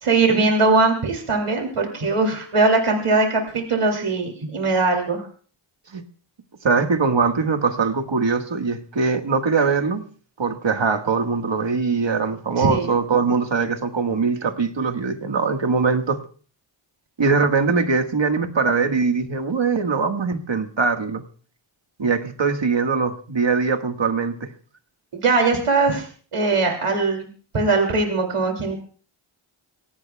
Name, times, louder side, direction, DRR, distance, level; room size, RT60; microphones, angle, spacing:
voice 1, 0.0-5.2 12.6-12.9 25.1-26.1 26.3-27.3 27.5-28.8, right 3 dB, 85° right, 2 dB, 2.7 m, -20 dB
voice 2, 6.6-10.0 10.4-16.2 17.2-21.2 22.0-24.5, right 4 dB, 60° right, 6 dB, 1.7 m, -22 dB
24.5 x 17.5 x 2.3 m, 0.42 s
cardioid pair, 50°, 50 cm